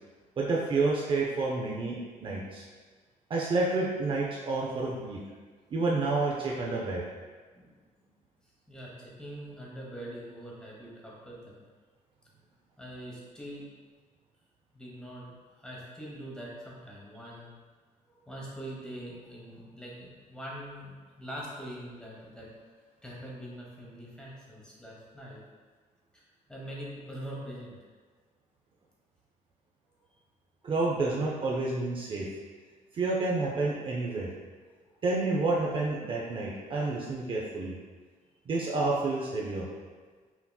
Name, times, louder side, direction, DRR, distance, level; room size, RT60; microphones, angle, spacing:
voice 1, 0.4-2.6 3.3-5.2 5.7-7.0 30.6-32.3 32.9-34.3 35.0-37.7 38.5-39.7, right 3 dB, 40° right, -4 dB, 0.5 m, -29 dB
voice 2, 8.7-11.6 12.8-13.6 14.7-17.5 18.1-22.5 23.0-25.4 26.1-26.2 26.5-27.8 34.6-34.9, equal, 5° left, -5 dB, 0.9 m, -43 dB
5.7 x 2.8 x 2.2 m, 1.5 s
cardioid pair, 140°, 14 cm